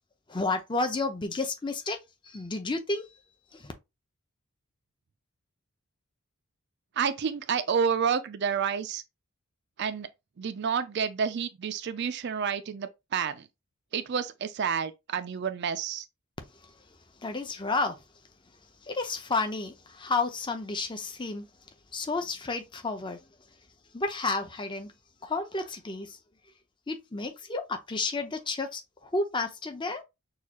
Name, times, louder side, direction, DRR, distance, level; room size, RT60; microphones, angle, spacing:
voice 1, 0.3-2.0 2.2-3.2 3.5-3.7 17.2-18.0 18.8-21.5 21.9-23.2 23.9-24.9 25.2-26.2 26.9-30.0, left 3 dB, 20° left, 0.7 m, -31 dB
voice 2, 7.0-9.0 9.8-10.1 10.4-13.5 13.9-16.1, right 7 dB, 50° right, 0.4 m, -29 dB
6.4 x 2.4 x 2.9 m
head